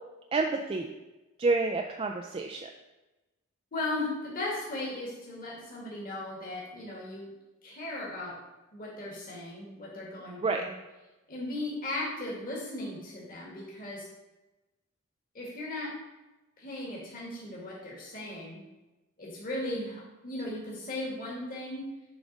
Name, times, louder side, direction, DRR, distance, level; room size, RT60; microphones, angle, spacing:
voice 1, 0.3-0.9 1.4-2.7 10.4-10.6, right 3 dB, 25° right, 3 dB, 0.4 m, -28 dB
voice 2, 3.7-7.3 7.6-8.3 8.7-10.7 11.3-14.1 15.3-15.9 16.6-18.6 19.2-21.8, left 2 dB, 40° left, -5 dB, 1.7 m, -37 dB
7.1 x 3.6 x 5.2 m, 1.1 s
head